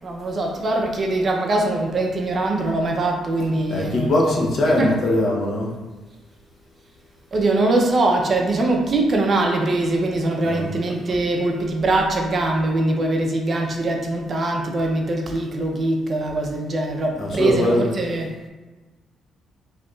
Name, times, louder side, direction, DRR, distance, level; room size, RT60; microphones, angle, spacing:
voice 1, 0.0-4.4 4.7-5.0 7.3-18.3, right 2 dB, 45° right, 2 dB, 0.6 m, -22 dB
voice 2, 3.7-5.7 10.4-10.7 17.2-17.9, left 1 dB, 55° left, -2 dB, 0.9 m, -21 dB
4.8 x 2.9 x 2.4 m, 1.2 s
cardioid pair, 90°, 0 cm